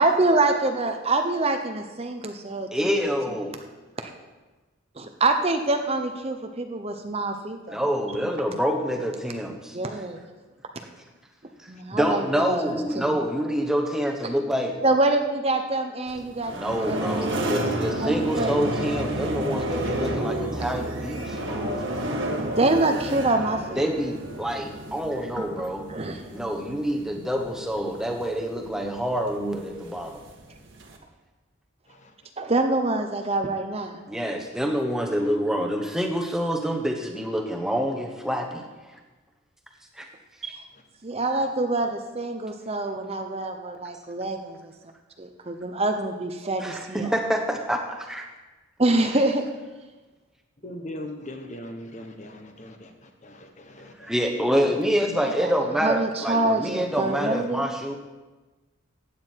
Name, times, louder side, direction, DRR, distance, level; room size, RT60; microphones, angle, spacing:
voice 1, 0.0-3.0 4.0-4.1 5.0-7.8 9.7-10.2 11.7-13.1 14.8-17.5 18.0-18.5 22.4-23.8 25.9-26.2 32.4-34.0 40.4-40.6 41.0-44.7 45.2-47.1 48.8-49.5 55.4-55.5 55.8-57.7, right 2 dB, 30° right, 5 dB, 0.8 m, -26 dB
voice 2, 2.7-3.5 7.7-9.8 11.9-14.7 16.5-21.8 23.8-25.9 26.3-30.2 34.1-38.7 39.9-40.1 46.6-48.3 54.0-57.9, equal, ahead, 2 dB, 1.1 m, -27 dB
sound 1, 16.1-31.0, right 1 dB, 55° right, 1.6 m, -31 dB
voice 3, 50.6-54.1, left 1 dB, 35° left, 5 dB, 1.1 m, -40 dB
15.5 x 9.4 x 4.6 m, 1.2 s
head